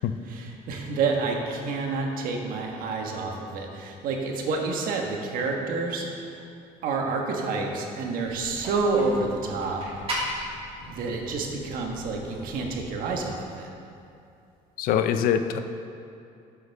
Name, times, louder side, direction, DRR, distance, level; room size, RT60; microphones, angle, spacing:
voice 1, 0.2-6.4 6.8-9.8 10.9-13.7, right 3 dB, 70° right, 1 dB, 1.4 m, -29 dB
sound 1, 8.2-13.2, equal, 40° right, 2.3 m, -37 dB
voice 2, 14.8-15.6, left 8 dB, 75° left, 9 dB, 0.6 m, -23 dB
12.0 x 7.6 x 3.5 m, 2.5 s
cardioid pair, 135°, 15 cm